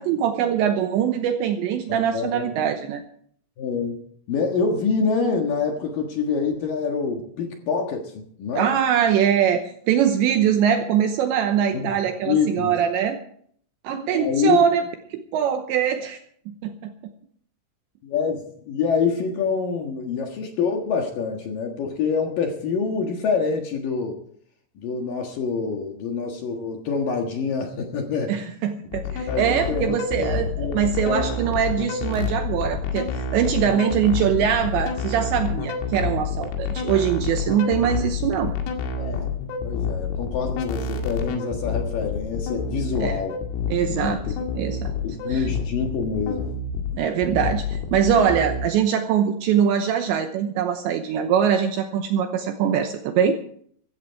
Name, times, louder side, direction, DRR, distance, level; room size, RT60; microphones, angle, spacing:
voice 1, 0.0-3.0 8.6-13.2 13.8-14.8 15.1-16.2 16.5-16.9 28.3-38.5 43.0-43.2 43.7-44.2 44.6-44.9 45.3-45.5 46.9-53.4, right 8 dB, 75° right, 6 dB, 2.8 m, -22 dB
voice 2, 1.9-2.5 3.6-4.0 4.3-8.8 10.4-10.5 11.7-11.9 12.2-12.8 13.9-14.6 18.0-24.2 24.8-28.4 29.1-31.4 39.0-39.3 39.6-43.3 43.9-44.3 45.0-46.5, left 5 dB, 60° left, 3 dB, 2.4 m, -26 dB
sound 1, 28.9-48.6, left 5 dB, 85° left, 4.8 m, -28 dB
16.0 x 14.5 x 4.7 m, 0.62 s
omnidirectional pair, 5.9 m